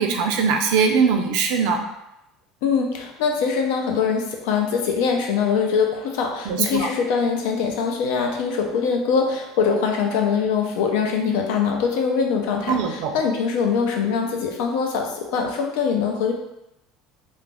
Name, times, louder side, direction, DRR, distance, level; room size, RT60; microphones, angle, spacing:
voice 1, 0.0-1.8 6.5-6.9 12.7-13.2, right 5 dB, 75° right, 4 dB, 0.4 m, -21 dB
voice 2, 2.6-16.3, left 6 dB, 80° left, 2 dB, 0.5 m, -23 dB
2.3 x 2.0 x 3.4 m, 0.87 s
supercardioid pair, 120°, 0 cm